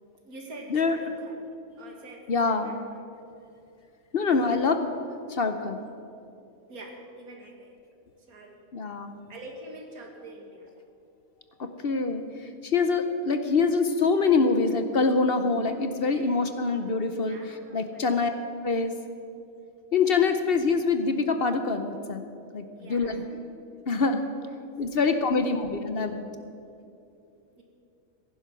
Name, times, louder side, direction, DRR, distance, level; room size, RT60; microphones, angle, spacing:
voice 1, 0.2-1.5 1.8-3.0 6.7-7.7 8.3-8.6 9.3-10.7 16.2-16.4 17.2-18.5 20.2-20.4 22.7-23.4 24.4-24.7 25.0-25.5 27.6-27.7, right 1 dB, 85° right, 1 dB, 2.3 m, -45 dB
voice 2, 2.3-2.8 4.1-4.8 5.3-5.8 8.7-9.2 11.6-17.4 17.7-18.3 18.6-18.9 19.9-22.2 22.5-22.6 22.9-23.2 23.9-24.2 24.8-26.3, left 4 dB, 50° left, 7 dB, 0.9 m, -25 dB
15.5 x 10.5 x 6.0 m, 2.6 s
omnidirectional pair, 1.5 m